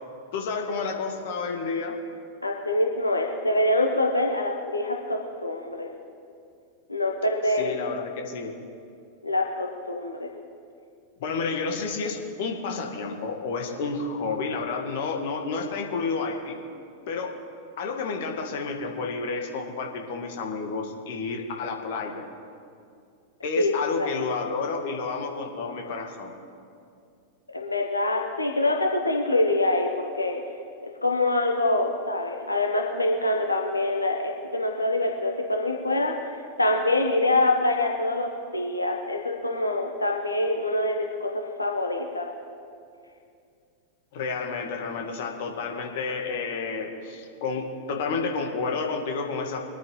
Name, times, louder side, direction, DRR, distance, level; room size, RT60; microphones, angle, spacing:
voice 1, 0.3-2.0 7.4-8.5 11.2-16.6 17.1-17.3 17.8-22.3 23.4-26.3 44.1-49.6, left 4 dB, 55° left, 2 dB, 1.8 m, -30 dB
voice 2, 2.4-5.9 6.9-7.8 9.2-10.3 23.6-24.1 27.5-30.4 30.8-36.3 36.6-42.3, left 2 dB, 80° left, 1 dB, 1.1 m, -25 dB
24.0 x 9.3 x 3.2 m, 2.4 s
figure-of-eight pair, 90°, 0 cm